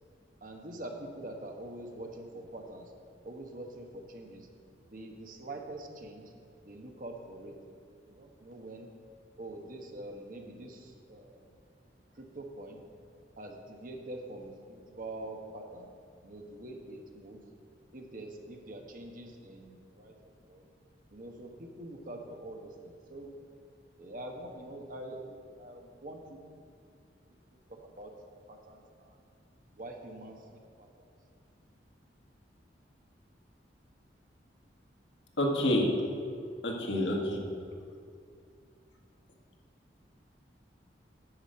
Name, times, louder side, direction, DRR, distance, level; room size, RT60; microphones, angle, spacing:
voice 1, 0.4-2.9 3.2-4.5 4.9-6.3 6.6-8.9 9.4-11.6 12.1-12.8 13.4-15.9 16.2-17.4 17.9-20.2 20.5-20.7 21.1-23.3 24.0-26.7 27.8-28.1 28.5-29.2 29.8-30.4 30.8-31.1, right 1 dB, 50° right, 2 dB, 1.2 m, -45 dB
voice 2, 35.4-35.9 36.6-37.4, left 1 dB, 85° left, 0 dB, 1.6 m, -28 dB
11.0 x 5.1 x 7.6 m, 2.4 s
head